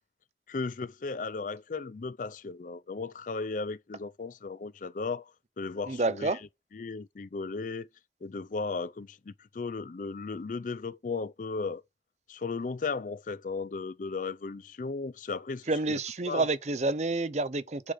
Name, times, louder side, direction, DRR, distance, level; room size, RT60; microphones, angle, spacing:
voice 1, 0.5-5.2 5.6-6.3 6.7-7.9 8.2-11.8 12.3-16.0 16.3-16.4, left 4 dB, 45° left, 0.4 m, -35 dB
voice 2, 5.9-6.4 15.7-17.9, right 2 dB, 40° right, 0.7 m, -29 dB
9.7 x 3.8 x 5.0 m
head